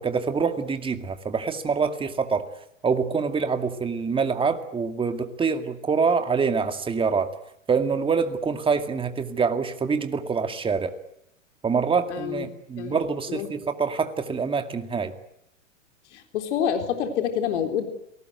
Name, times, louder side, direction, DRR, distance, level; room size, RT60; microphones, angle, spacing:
voice 1, 0.0-2.5 2.8-7.3 7.7-11.0 11.6-15.2, right 5 dB, 15° right, 8 dB, 2.2 m, -25 dB
voice 2, 12.1-12.5 12.8-13.0 13.3-13.5 16.1-17.9, left 8 dB, 60° left, 6 dB, 4.0 m, -27 dB
28.5 x 19.0 x 8.1 m, 0.77 s
hypercardioid pair, 120°, 39 cm